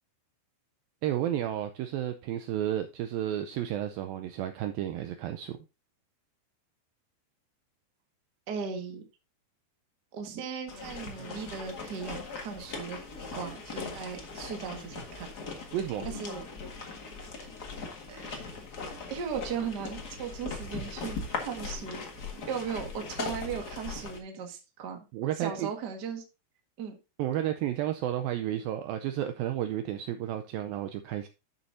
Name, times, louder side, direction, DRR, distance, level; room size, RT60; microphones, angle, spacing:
voice 1, 1.0-5.6 15.7-16.1 25.1-25.7 27.2-31.3, right 11 dB, 85° right, 8 dB, 2.1 m, -32 dB
voice 2, 8.5-9.0 10.1-15.3 16.0-16.4 18.1-18.4 19.1-21.2 21.4-22.0 22.5-25.1 25.4-26.2 26.8-26.9, right 6 dB, 60° right, 3 dB, 1.0 m, -37 dB
sound 1, 10.7-24.2, left 4 dB, 80° left, 0.8 m, -40 dB
12.0 x 7.0 x 2.7 m, 0.28 s
omnidirectional pair, 4.8 m